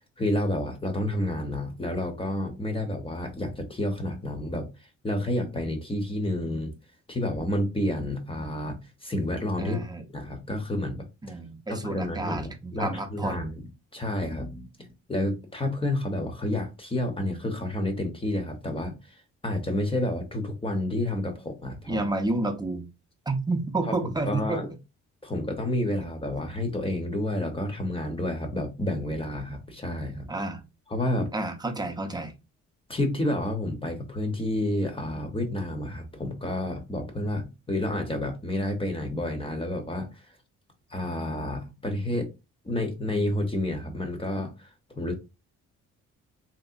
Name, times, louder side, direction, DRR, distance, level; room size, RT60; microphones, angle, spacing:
voice 1, 0.2-4.7 5.0-6.7 7.1-9.8 10.1-11.3 11.7-13.5 13.9-14.7 15.1-22.1 23.9-24.7 25.2-30.3 30.9-31.3 32.9-40.2 40.9-42.3 42.6-44.7 44.9-45.1, left 1 dB, 20° left, 0.8 m, -30 dB
voice 2, 9.6-10.0 11.2-13.5 21.9-22.9 23.3-24.6 30.3-30.6 31.3-32.3, right 2 dB, 15° right, 0.7 m, -30 dB
3.1 x 2.9 x 2.5 m
cardioid pair, 90°, 30 cm